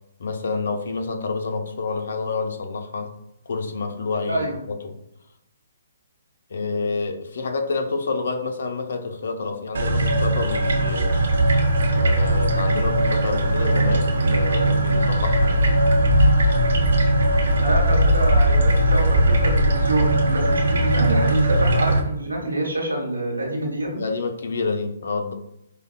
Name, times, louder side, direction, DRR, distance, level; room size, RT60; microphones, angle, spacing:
voice 1, 0.2-3.1 3.5-5.0 6.5-11.1 11.9-15.6 17.4-17.5 23.9-25.3, left 4 dB, 65° left, 5 dB, 0.6 m, -28 dB
sound 1, 9.8-22.0, right 1 dB, 65° right, 0.7 m, -19 dB
voice 2, 17.6-24.0, right 1 dB, 90° right, 0 dB, 1.2 m, -26 dB
4.8 x 2.2 x 2.3 m, 0.82 s
figure-of-eight pair, 130°, 0 cm